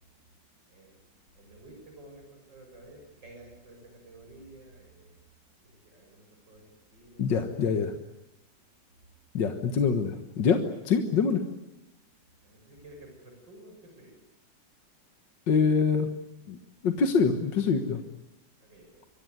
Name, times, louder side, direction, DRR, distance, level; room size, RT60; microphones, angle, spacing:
voice 1, 0.7-1.1 1.3-5.2 5.5-7.7 12.4-14.2 18.6-19.0, right 1 dB, 75° right, 2 dB, 7.2 m, -52 dB
voice 2, 7.2-7.9 9.3-11.4 15.5-16.1 16.5-16.6 16.8-18.0, left 5 dB, 75° left, 6 dB, 2.1 m, -25 dB
26.0 x 22.5 x 9.4 m, 0.90 s
omnidirectional pair, 2.0 m